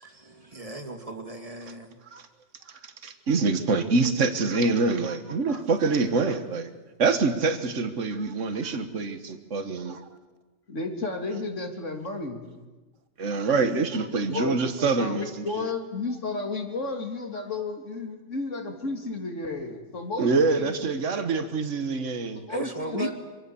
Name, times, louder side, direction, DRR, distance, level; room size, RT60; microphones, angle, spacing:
voice 1, 0.1-1.9 5.5-5.6 22.5-23.1, right 1 dB, 30° right, 5 dB, 2.4 m, -36 dB
voice 2, 3.0-6.7 7.0-10.0 13.2-15.7 20.2-22.4, right 4 dB, 75° right, 8 dB, 1.8 m, -25 dB
voice 3, 10.7-12.5 14.3-20.7 22.5-23.1, left 3 dB, 75° left, 4 dB, 3.2 m, -32 dB
26.0 x 24.0 x 7.0 m, 1.2 s
omnidirectional pair, 1.3 m